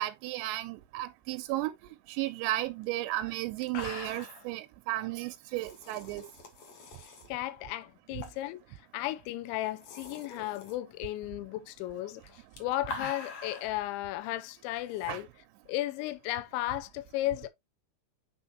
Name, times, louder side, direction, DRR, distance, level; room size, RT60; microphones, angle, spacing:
voice 1, 0.0-1.7 2.1-6.2 15.1-15.2, right 16 dB, 85° right, 2.5 m, -34 dB
sound 1, 2.8-2.9 3.3-3.4 3.6-4.5 5.5-7.3 8.2-8.5 8.8-8.9 9.6-10.8 12.2-13.8 14.9-15.1, left 3 dB, 65° left, 1.7 m, -43 dB
voice 2, 7.3-15.3 15.7-17.5, left 15 dB, 85° left, 2.9 m, -35 dB
9.0 x 4.1 x 2.9 m
omnidirectional pair, 5.5 m